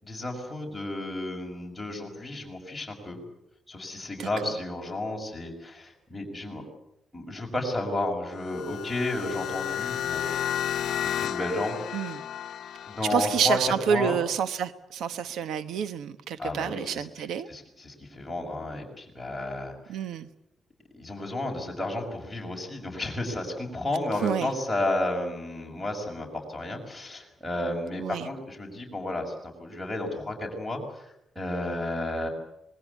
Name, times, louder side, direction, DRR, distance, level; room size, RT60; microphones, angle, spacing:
voice 1, 0.0-3.2 3.7-6.6 7.1-10.2 11.0-12.1 12.9-13.6 13.9-14.2 16.4-19.7 20.9-31.1 31.3-32.3, left 1 dB, 5° left, -1 dB, 6.3 m, -32 dB
sound 1, 8.3-13.4, left 10 dB, 70° left, 0.9 m, -32 dB
voice 2, 13.1-17.5 19.9-20.3 24.2-24.5 28.0-28.3, right 8 dB, 85° right, 12 dB, 1.2 m, -28 dB
26.5 x 21.0 x 8.3 m, 0.82 s
cardioid pair, 155°, 0 cm